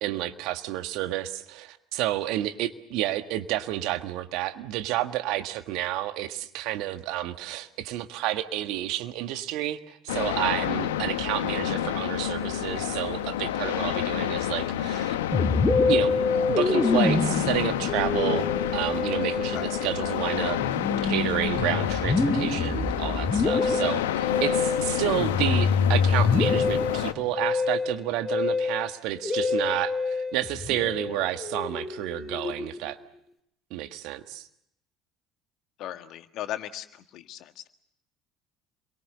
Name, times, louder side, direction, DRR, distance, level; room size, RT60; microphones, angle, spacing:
voice 1, 0.0-15.1 15.8-16.2 16.5-20.6 21.0-33.0 33.7-34.5, right 14 dB, 65° right, 9 dB, 1.6 m, -30 dB
sound 1, 10.1-27.1, left 11 dB, 80° left, 1.1 m, -29 dB
Musical instrument, 15.3-32.9, left 4 dB, 20° left, 4.4 m, -26 dB
voice 2, 35.8-37.7, left 12 dB, 60° left, 8 dB, 1.7 m, -37 dB
28.5 x 23.0 x 6.7 m, 0.76 s
hypercardioid pair, 60°, 0 cm